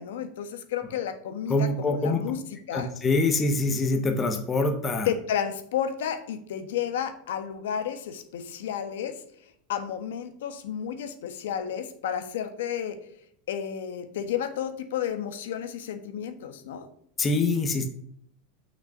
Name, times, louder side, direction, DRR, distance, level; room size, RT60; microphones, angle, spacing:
voice 1, 0.0-2.4 2.7-2.9 5.0-13.0 13.5-16.9, left 9 dB, 85° left, 8 dB, 1.3 m, -32 dB
voice 2, 1.5-2.2 2.7-5.1 17.2-18.0, left 2 dB, 15° left, 5 dB, 0.8 m, -25 dB
6.5 x 6.0 x 5.7 m, 0.66 s
supercardioid pair, 175°, 0 cm